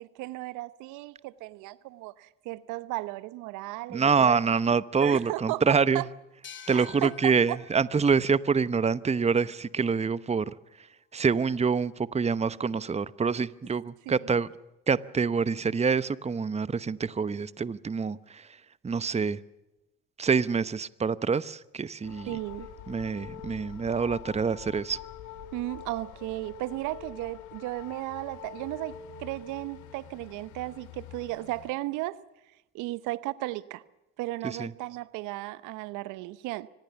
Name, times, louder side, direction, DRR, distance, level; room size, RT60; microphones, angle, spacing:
voice 1, 0.0-4.4 5.0-6.1 6.7-7.6 14.1-14.2 22.3-22.7 25.5-32.2 32.7-33.8 34.2-36.7, right 18 dB, 70° right, 1.0 m, -35 dB
voice 2, 3.9-6.0 6.7-10.5 11.1-14.5 14.9-18.5 18.8-19.4 20.2-22.3 22.9-25.0 34.4-34.7, right 5 dB, 20° right, 0.9 m, -26 dB
sound 1, 6.4-9.8, left 8 dB, 35° left, 2.7 m, -51 dB
sound 2, 22.0-31.7, left 9 dB, 70° left, 2.3 m, -45 dB
25.0 x 19.5 x 7.1 m
hypercardioid pair, 60°, 31 cm